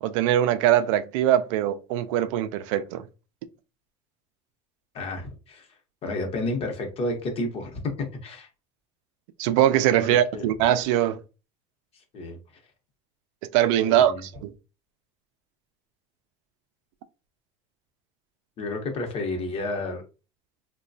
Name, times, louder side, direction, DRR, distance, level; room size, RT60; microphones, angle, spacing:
voice 1, 0.0-3.0 9.4-11.2 13.5-14.5, right 11 dB, 80° right, 0.4 m, -22 dB
voice 2, 4.9-5.7 6.0-7.8 8.2-8.5 10.0-10.4 12.1-12.4 13.8-14.2 18.6-20.0, left 2 dB, 40° left, 0.9 m, -31 dB
3.0 x 2.2 x 2.6 m
supercardioid pair, 125°, 16 cm